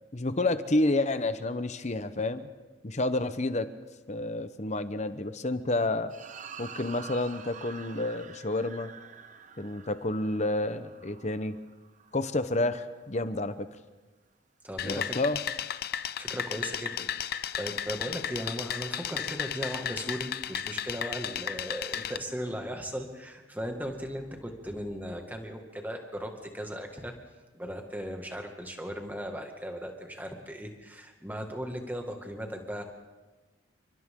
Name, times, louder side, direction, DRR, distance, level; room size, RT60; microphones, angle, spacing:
voice 1, 0.1-2.5 2.8-3.7 4.1-6.1 6.6-8.9 9.6-11.6 12.1-13.7 14.8-15.4, left 2 dB, 35° left, 11 dB, 0.9 m, -29 dB
sound 1, 6.1-12.6, right 6 dB, 40° right, 0.9 m, -47 dB
voice 2, 14.6-15.2 16.2-27.1 27.5-32.8, equal, 10° right, 3 dB, 2.0 m, -37 dB
sound 2, 14.8-22.2, left 9 dB, 50° left, 0.6 m, -34 dB
29.5 x 24.5 x 3.8 m, 1.3 s
head